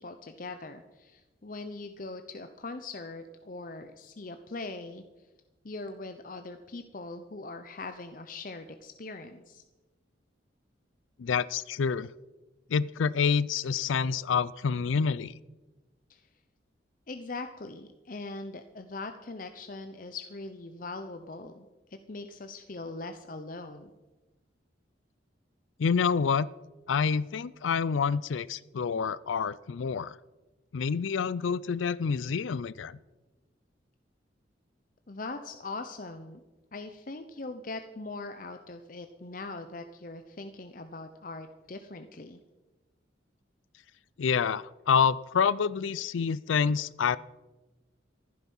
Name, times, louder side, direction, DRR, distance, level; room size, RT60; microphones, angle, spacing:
voice 1, 0.0-5.0 5.6-9.6 16.1-16.3 17.1-23.9 35.1-36.4 36.7-42.4, left 3 dB, 45° left, 8 dB, 0.7 m, -41 dB
voice 2, 11.2-12.1 12.7-15.3 25.8-26.5 26.9-30.2 30.7-33.0 44.2-47.2, left 6 dB, 90° left, 19 dB, 0.4 m, -27 dB
15.0 x 12.0 x 5.5 m, 1.2 s
head